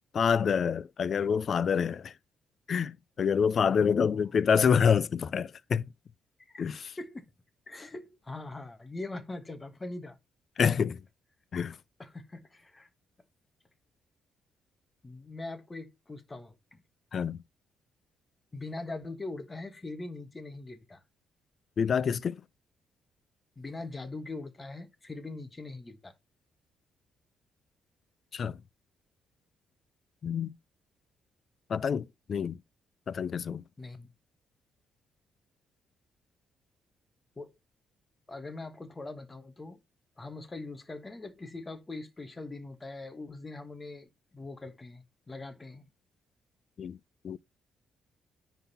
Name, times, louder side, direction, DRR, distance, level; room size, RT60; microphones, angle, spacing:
voice 1, 0.1-2.1 2.7-5.9 6.6-6.9 10.6-11.0 11.5-11.8 17.1-17.4 21.8-22.4 28.3-28.6 30.2-30.5 31.7-32.6 33.1-33.6 46.8-47.0 47.2-47.4, left 6 dB, 50° left, 0.4 m, -27 dB
voice 2, 3.6-4.2 6.5-6.6 7.0-7.3 7.7-10.2 12.0-12.9 15.0-16.8 18.5-21.0 23.6-26.1 33.8-34.1 37.4-37.5 38.3-39.8 40.2-45.8, left 2 dB, 20° left, 1.3 m, -42 dB
10.0 x 4.0 x 4.1 m
cardioid pair, 90°, 0 cm